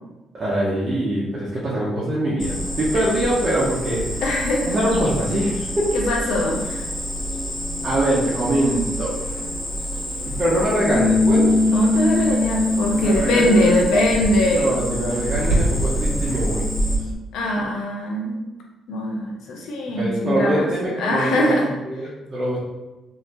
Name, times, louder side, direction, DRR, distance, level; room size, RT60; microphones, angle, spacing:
voice 1, 0.3-4.2 4.7-5.9 7.8-9.2 10.3-11.5 12.9-13.7 14.5-16.6 17.6-17.7 19.9-21.5 21.8-22.6, right 1 dB, 35° right, -7 dB, 0.9 m, -23 dB
Cricket, 2.4-17.0, equal, 60° left, 1.4 m, -27 dB
voice 2, 4.2-4.8 5.9-6.8 11.7-14.7 17.3-18.4 18.9-20.7 21.0-21.7, left 1 dB, 80° left, -1 dB, 0.5 m, -21 dB
Bass guitar, 10.9-17.2, left 2 dB, 30° left, 0.6 m, -23 dB
3.2 x 2.7 x 2.9 m, 1.1 s
cardioid pair, 90°, 0 cm